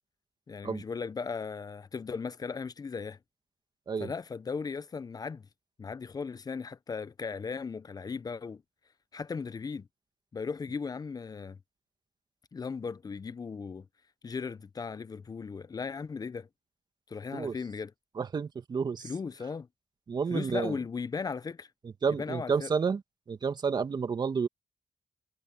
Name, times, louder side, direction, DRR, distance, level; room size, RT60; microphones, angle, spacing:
voice 1, 0.5-3.2 4.0-5.5 5.8-8.6 9.1-9.9 10.3-11.6 12.5-13.9 14.2-16.5 17.1-17.9 19.0-19.7 20.3-21.7 22.1-22.7, left 5 dB, 45° left, 1.1 m, -37 dB
voice 2, 18.2-19.1 20.1-20.8 22.0-23.0 23.3-24.5, right 5 dB, 55° right, 2.4 m, -30 dB
hypercardioid pair, 40°, 9 cm